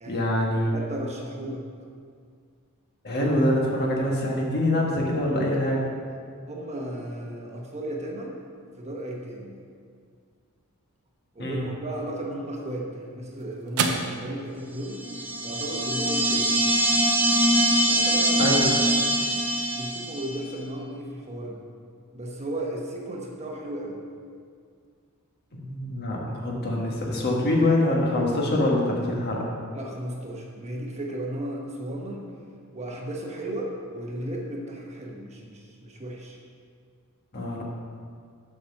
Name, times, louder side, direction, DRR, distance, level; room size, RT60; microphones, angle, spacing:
voice 1, 0.1-0.7 3.0-5.8 11.4-11.7 18.4-18.7 25.5-29.5 37.3-37.6, left 1 dB, 45° left, -2 dB, 1.4 m, -24 dB
voice 2, 0.7-1.6 6.5-8.3 8.8-9.5 11.3-15.0 15.4-16.5 17.9-18.5 19.7-21.6 22.1-24.0 29.7-32.2 32.7-36.4, right 1 dB, 30° right, -1 dB, 1.0 m, -35 dB
sound 1, 12.5-21.0, right 4 dB, 70° right, 0.7 m, -37 dB
sound 2, 15.0-20.4, right 1 dB, 10° right, 0.8 m, -23 dB
7.0 x 5.9 x 5.8 m, 2.1 s
head